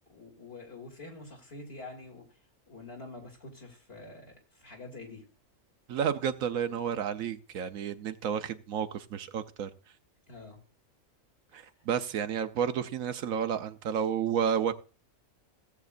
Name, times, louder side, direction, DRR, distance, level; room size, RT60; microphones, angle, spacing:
voice 1, 0.1-2.2 2.7-5.2 10.3-10.6 11.5-11.7, left 2 dB, 45° left, 2.9 m, -46 dB
voice 2, 5.9-9.7 11.5-14.7, right 8 dB, 90° right, 1.2 m, -31 dB
17.0 x 8.1 x 2.5 m
omnidirectional pair, 1.4 m